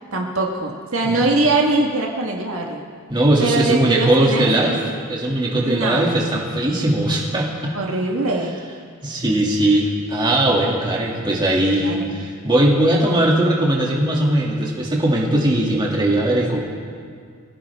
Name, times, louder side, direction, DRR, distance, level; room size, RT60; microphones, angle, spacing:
voice 1, 0.1-2.9 3.4-4.8 5.6-6.2 7.7-8.6 11.7-12.1, right 2 dB, 75° right, 0 dB, 1.7 m, -22 dB
voice 2, 3.1-7.8 9.0-16.6, right 1 dB, 20° right, -3 dB, 2.5 m, -19 dB
24.0 x 16.0 x 3.6 m, 2.1 s
head